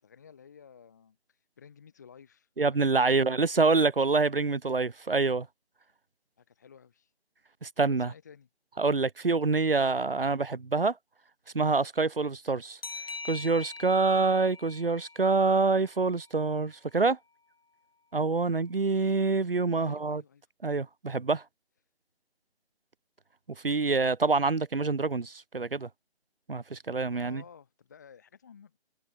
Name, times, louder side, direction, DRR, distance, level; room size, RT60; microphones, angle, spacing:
voice 1, 0.0-3.3 6.4-7.1 7.8-8.5 19.7-20.4 27.1-28.8, left 7 dB, 15° left, 3.7 m, -53 dB
voice 2, 2.6-5.5 7.6-8.1 8.8-11.0 11.5-12.8 13.3-17.2 18.1-20.2 20.6-21.4 23.6-25.9 26.5-27.4, right 3 dB, 55° right, 1.8 m, -26 dB
sound 1, 12.8-16.2, left 3 dB, 60° left, 2.4 m, -43 dB
figure-of-eight pair, 180°, 33 cm